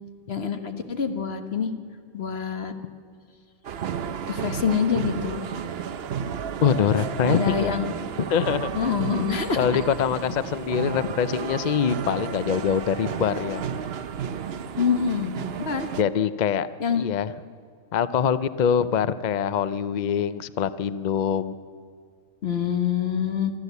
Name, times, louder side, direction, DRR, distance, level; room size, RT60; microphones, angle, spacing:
voice 1, 0.3-1.7 2.1-2.7 4.3-5.4 7.3-7.9 8.7-9.8 14.8-15.3 15.6-15.9 16.8-17.0 22.4-23.5, left 7 dB, 45° left, 7 dB, 1.5 m, -26 dB
sound 1, 3.6-16.0, right 8 dB, 55° right, 0.8 m, -32 dB
voice 2, 6.6-7.8 8.3-8.7 9.6-13.6 16.0-16.7 16.9-17.3 17.9-21.5, left 8 dB, 65° left, 14 dB, 0.4 m, -24 dB
24.5 x 13.5 x 8.2 m, 2.2 s
omnidirectional pair, 1.5 m